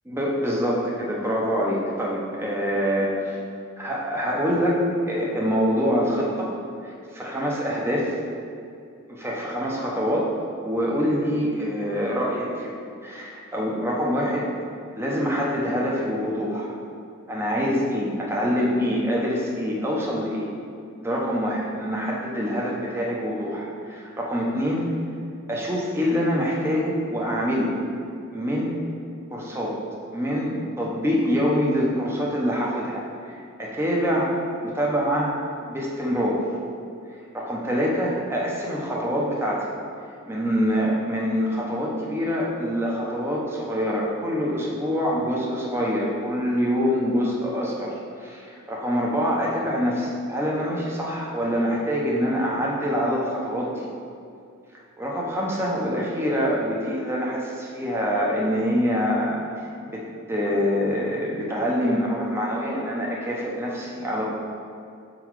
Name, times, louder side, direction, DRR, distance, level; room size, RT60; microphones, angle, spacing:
voice 1, 0.1-3.4 3.8-4.8 5.1-6.6 6.8-8.1 9.1-10.3 10.6-12.7 13.0-14.5 15.0-16.7 17.3-20.5 21.0-24.9 25.5-27.7 28.3-28.7 29.3-29.8 30.1-35.4 35.7-36.4 37.3-39.7 40.3-53.9 55.0-64.4, equal, 10° right, -3 dB, 0.7 m, -25 dB
6.0 x 3.9 x 4.6 m, 2.4 s
head